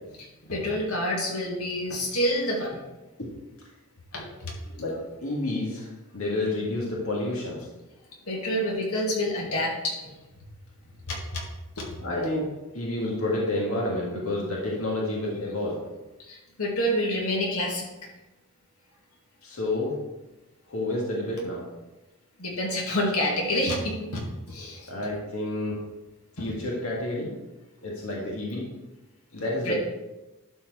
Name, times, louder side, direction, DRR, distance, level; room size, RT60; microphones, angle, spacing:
voice 1, 0.5-2.8 4.1-4.5 8.3-10.1 11.1-11.4 11.8-11.9 16.3-17.9 22.4-24.9 26.4-26.5 29.6-29.7, equal, 85° left, -1 dB, 2.1 m, -28 dB
voice 2, 4.8-7.7 12.0-15.8 19.4-20.0 20.7-21.6 24.6-25.8 26.4-27.3 27.8-28.6 29.3-29.7, left 1 dB, 70° left, -3 dB, 1.9 m, -30 dB
11.5 x 4.6 x 4.7 m, 1.1 s
head